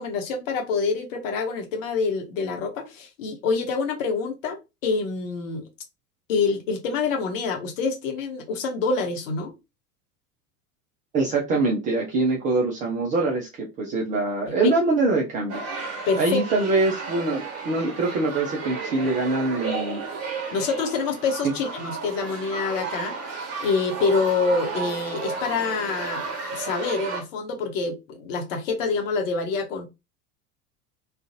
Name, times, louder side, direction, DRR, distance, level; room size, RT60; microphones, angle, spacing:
voice 1, 0.0-5.7 6.3-9.6 14.6-14.7 16.1-16.4 20.5-23.1 23.6-29.9, left 4 dB, 55° left, 4 dB, 0.9 m, -26 dB
voice 2, 11.1-15.6 16.2-20.0 21.4-21.5, right 3 dB, 20° right, -1 dB, 0.4 m, -24 dB
sound 1, 15.5-27.2, right 4 dB, 35° right, 1.2 m, -33 dB
2.4 x 2.3 x 2.7 m, 0.24 s
figure-of-eight pair, 80°, 48 cm